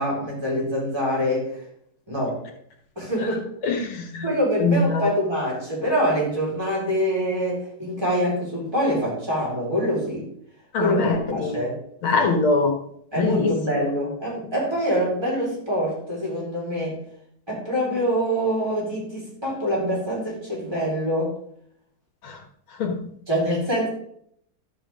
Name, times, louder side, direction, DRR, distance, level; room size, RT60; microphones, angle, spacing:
voice 1, 0.0-1.6 2.1-2.4 3.0-3.4 4.2-10.3 10.8-11.0 11.3-11.8 13.1-17.0 17.5-21.3 23.3-23.9, equal, 10° right, -5 dB, 4.8 m, -25 dB
voice 2, 3.6-4.3 4.6-5.1 10.7-11.6 12.0-12.7 13.2-13.5 22.2-22.4 22.8-23.0, left 3 dB, 80° left, 3 dB, 2.4 m, -22 dB
13.0 x 7.7 x 3.8 m, 0.67 s
omnidirectional pair, 2.3 m